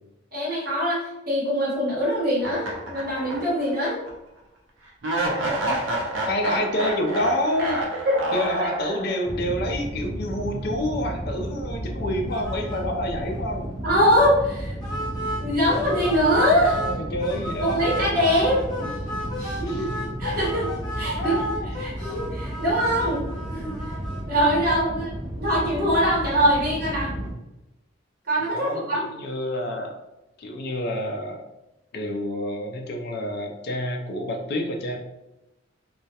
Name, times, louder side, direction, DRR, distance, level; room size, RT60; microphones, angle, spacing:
voice 1, 0.3-4.0 7.6-7.7 8.1-8.2 13.8-14.8 15.4-16.8 17.6-18.9 19.4-19.9 20.2-20.7 21.0-21.4 21.8-23.7 24.3-25.1 25.4-27.1 28.3-29.1, equal, 50° right, -5 dB, 1.0 m, -23 dB
sound 1, 2.4-3.7 4.1-4.2 5.0-9.3, right 1 dB, 70° right, 0.5 m, -28 dB
voice 2, 6.2-7.8 8.3-13.7 16.7-17.9 19.6-19.9 21.1-21.7 24.9-25.1 28.4-29.9 30.4-31.4 31.9-35.0, left 1 dB, 55° left, 3 dB, 0.4 m, -28 dB
sound 2, 9.2-27.3, equal, 20° right, 0.6 m, -33 dB
sound 3, 12.3-12.8 13.1-13.2 13.6-13.7 14.8-16.9 17.2-24.2, equal, 20° left, 0.8 m, -34 dB
2.2 x 2.1 x 2.7 m, 0.93 s
head